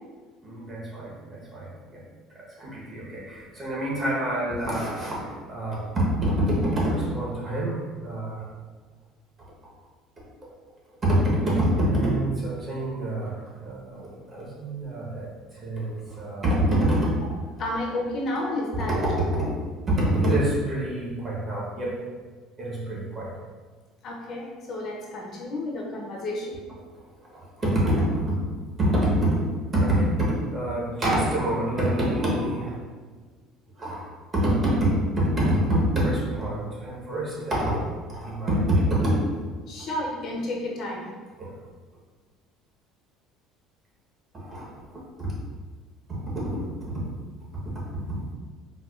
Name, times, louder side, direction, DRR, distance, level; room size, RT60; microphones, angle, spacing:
voice 1, 0.4-2.0 2.3-8.4 11.0-17.1 18.9-19.5 19.9-22.0 22.6-23.3 27.3-28.4 28.8-29.4 29.7-32.8 33.8-37.8 38.1-39.2 41.4-41.6 44.3-45.3 46.1-46.6 46.9-47.0 48.1-48.2, right 1 dB, 25° right, -5 dB, 0.9 m, -26 dB
voice 2, 17.6-19.0 19.4-19.5 24.0-26.5 39.7-41.1, left 1 dB, 40° left, -2 dB, 0.5 m, -31 dB
4.1 x 2.2 x 2.3 m, 1.4 s
cardioid pair, 150°, 0 cm